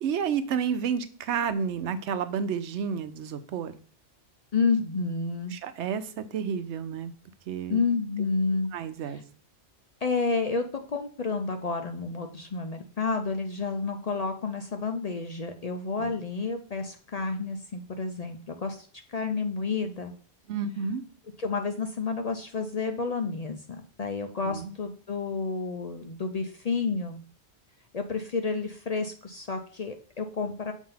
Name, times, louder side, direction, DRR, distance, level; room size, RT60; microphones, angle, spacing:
voice 1, 0.0-3.7 5.5-7.1 7.5-7.8 8.7-9.2 16.0-16.2 20.5-21.0 24.4-24.7, right 7 dB, 85° right, 12 dB, 0.9 m, -30 dB
voice 2, 4.5-5.6 7.7-8.7 9.0-9.2 10.0-20.1 21.4-23.6 24.0-27.2 27.9-30.7, left 4 dB, 50° left, 5 dB, 0.5 m, -30 dB
7.1 x 2.7 x 5.6 m, 0.42 s
omnidirectional pair, 1.1 m